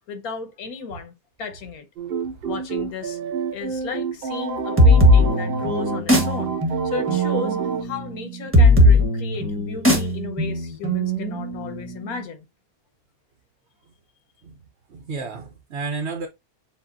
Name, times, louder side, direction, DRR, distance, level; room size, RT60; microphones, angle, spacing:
voice 1, 0.1-1.9 2.4-3.2 3.5-6.6 6.8-12.5, left 5 dB, 80° left, 1.4 m, -34 dB
sound 1, 2.0-7.8, right 5 dB, 70° right, 0.5 m, -28 dB
sound 2, 4.8-12.2, left 1 dB, 10° right, 1.1 m, -18 dB
voice 2, 14.9-16.3, right 4 dB, 55° right, 0.9 m, -31 dB
7.3 x 2.5 x 2.6 m
omnidirectional pair, 1.5 m